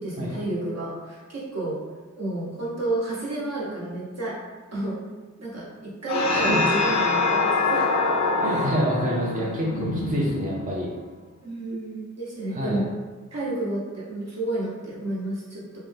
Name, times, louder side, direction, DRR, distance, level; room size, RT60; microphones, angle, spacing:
voice 1, 0.0-1.8 2.2-4.4 4.7-5.0 5.4-7.9 8.4-8.7 9.3-9.5 11.4-12.9 13.3-15.8, right 2 dB, 55° right, -6 dB, 0.9 m, -30 dB
sound 1, 6.1-10.9, left 3 dB, 65° left, 0.4 m, -24 dB
voice 2, 6.3-6.6 8.4-10.9 12.5-12.8, equal, 25° right, -4 dB, 0.5 m, -27 dB
2.5 x 2.1 x 3.3 m, 1.3 s
cardioid pair, 55°, 31 cm